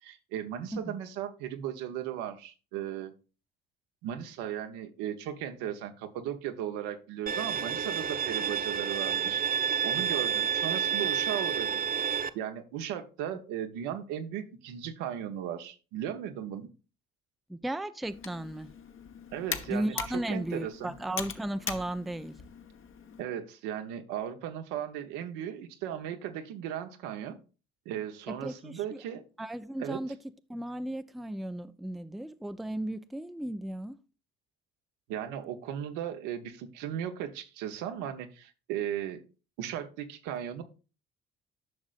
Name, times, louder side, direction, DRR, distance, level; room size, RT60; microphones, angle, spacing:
voice 1, 0.0-3.1 4.0-9.5 9.8-11.7 12.3-16.7 19.3-20.9 23.2-27.4 27.8-29.2 29.8-30.0 35.1-39.2 39.6-40.6, right 10 dB, 75° right, 1.0 m, -36 dB
Bowed string instrument, 7.3-12.3, right 8 dB, 30° right, 0.7 m, -29 dB
voice 2, 17.5-18.7 19.7-22.3 28.3-29.0 29.4-30.2 30.5-34.0, right 1 dB, ahead, 0.5 m, -35 dB
Computer keyboard, 18.0-23.2, left 6 dB, 40° left, 1.1 m, -41 dB
11.0 x 6.2 x 2.5 m
hypercardioid pair, 50°, 31 cm